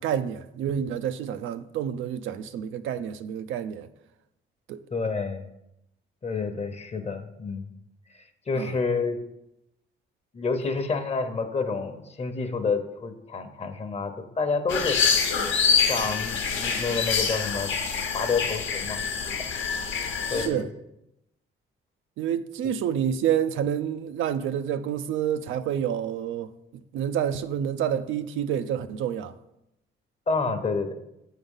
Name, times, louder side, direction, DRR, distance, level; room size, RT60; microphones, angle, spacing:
voice 1, 0.0-3.9 4.7-4.8 8.5-8.8 20.3-20.7 22.2-29.3, right 9 dB, 85° right, 0.5 m, -28 dB
voice 2, 4.9-5.5 6.2-7.7 8.1-9.2 10.3-15.0 15.9-17.7 18.1-19.0 19.3-19.4 20.3-20.7 30.3-30.9, left 4 dB, 35° left, 0.9 m, -29 dB
sound 1, 14.7-20.5, left 6 dB, 75° left, 1.0 m, -26 dB
7.9 x 3.7 x 5.4 m
cardioid pair, 90°, 20 cm